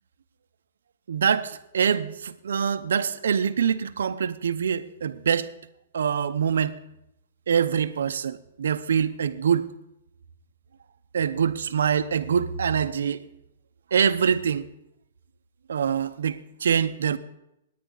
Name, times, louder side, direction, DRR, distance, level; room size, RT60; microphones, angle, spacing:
voice 1, 1.1-5.5 5.9-6.7 7.5-9.7 11.1-13.2 13.9-14.6 15.7-17.2, right 7 dB, 85° right, 0.7 m, -24 dB
18.5 x 9.4 x 3.9 m
hypercardioid pair, 155°, 0 cm